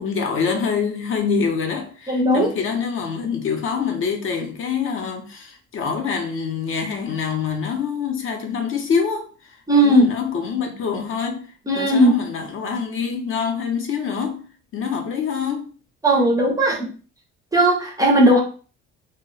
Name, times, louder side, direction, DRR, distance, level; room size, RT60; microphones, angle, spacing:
voice 1, 0.0-9.6 9.8-14.4 14.7-15.7, left 6 dB, 45° left, 0.5 m, -25 dB
voice 2, 2.1-2.5 9.7-10.1 11.7-12.1 16.0-16.9 17.5-18.4, right 1 dB, 10° right, 0.5 m, -16 dB
2.1 x 2.0 x 3.7 m
cardioid pair, 140°, 31 cm